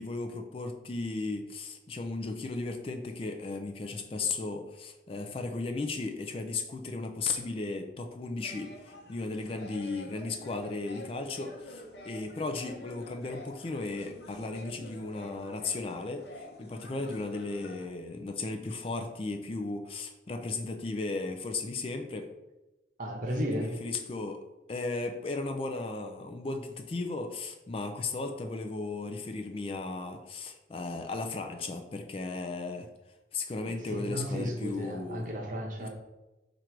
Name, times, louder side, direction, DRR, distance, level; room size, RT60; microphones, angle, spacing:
voice 1, 0.0-22.3 23.5-24.4 24.7-32.9 33.3-35.3 35.8-35.9, left 3 dB, 30° left, 5 dB, 0.3 m, -35 dB
sound 1, 8.4-17.9, left 1 dB, 75° left, 0.7 m, -48 dB
voice 2, 23.0-23.7 33.6-35.9, equal, 45° right, 0 dB, 0.9 m, -34 dB
4.5 x 2.5 x 4.5 m, 1.0 s
head